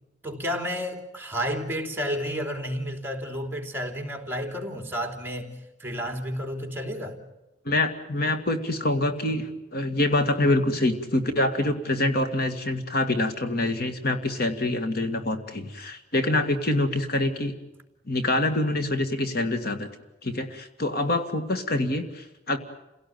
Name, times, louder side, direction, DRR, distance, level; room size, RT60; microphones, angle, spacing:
voice 1, 0.2-5.5 5.8-7.2, equal, 15° right, 3.3 m, -31 dB
voice 2, 7.7-17.5 18.1-19.9 20.2-22.6, left 1 dB, 60° left, 2.1 m, -25 dB
29.0 x 17.5 x 9.4 m
head